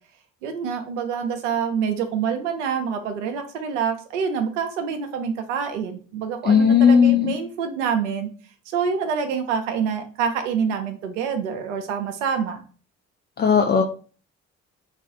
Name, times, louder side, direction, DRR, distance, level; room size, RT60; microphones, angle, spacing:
voice 1, 0.4-8.3 8.7-12.6, right 6 dB, 80° right, 6 dB, 0.5 m, -26 dB
voice 2, 6.4-7.4 13.4-13.8, left 7 dB, 30° left, 3 dB, 0.4 m, -16 dB
2.4 x 2.3 x 3.8 m, 0.40 s
figure-of-eight pair, 45°, 36 cm